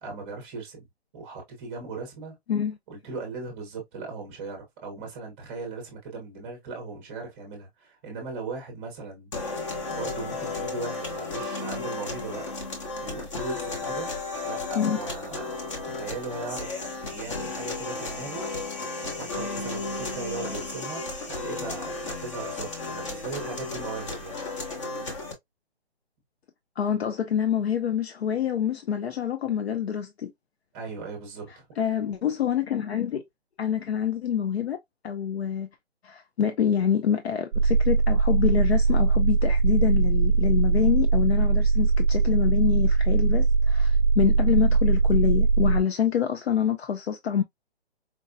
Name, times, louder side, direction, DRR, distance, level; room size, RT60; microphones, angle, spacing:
voice 1, 0.0-0.8 1.1-2.4 2.9-9.3 9.9-12.7 13.0-14.1 14.4-15.4 15.8-16.8 17.1-24.4 30.7-31.6, right 3 dB, 15° right, 0.7 m, -38 dB
sound 1, 9.3-25.3, left 3 dB, 30° left, 0.8 m, -34 dB
voice 2, 26.8-30.3 31.8-33.2 33.6-34.8 35.0-35.7 36.0-47.4, left 8 dB, 70° left, 0.6 m, -26 dB
sound 2, 37.5-45.8, right 4 dB, 85° right, 0.5 m, -21 dB
4.5 x 2.1 x 2.5 m
hypercardioid pair, 160°, 32 cm